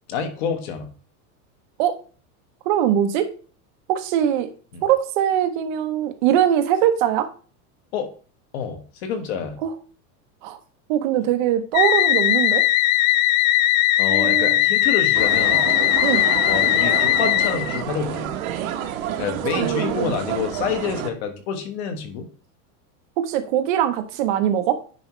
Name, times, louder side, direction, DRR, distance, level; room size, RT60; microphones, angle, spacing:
voice 1, 0.1-0.9 4.7-4.8 7.9-8.1 8.5-9.6 14.0-15.6 16.5-18.3 19.2-22.3, left 6 dB, 45° left, 7 dB, 1.4 m, -28 dB
voice 2, 2.7-3.3 3.9-4.5 4.8-7.3 9.6-9.7 10.4-10.6 10.9-12.6 14.1-14.6 16.0-16.3 19.1-20.4 23.2-24.8, right 10 dB, 35° right, 9 dB, 0.7 m, -22 dB
sound 1, 11.7-17.8, left 13 dB, 60° left, 0.6 m, -19 dB
sound 2, 15.1-21.1, right 10 dB, 65° right, 1.1 m, -29 dB
9.9 x 4.8 x 3.1 m, 0.39 s
supercardioid pair, 180°, 45 cm